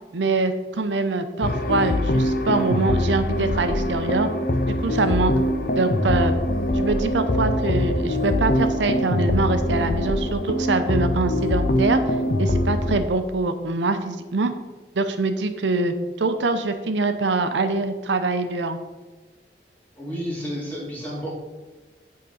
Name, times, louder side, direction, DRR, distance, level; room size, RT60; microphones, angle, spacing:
voice 1, 0.1-4.3 4.7-5.3 5.8-6.3 6.7-14.5 15.0-18.8, right 3 dB, 90° right, 8 dB, 0.6 m, -24 dB
sound 1, 1.4-13.0, left 1 dB, 55° left, 0.7 m, -23 dB
voice 2, 20.0-21.3, equal, 10° left, -6 dB, 2.6 m, -31 dB
9.3 x 3.8 x 5.4 m, 1.2 s
head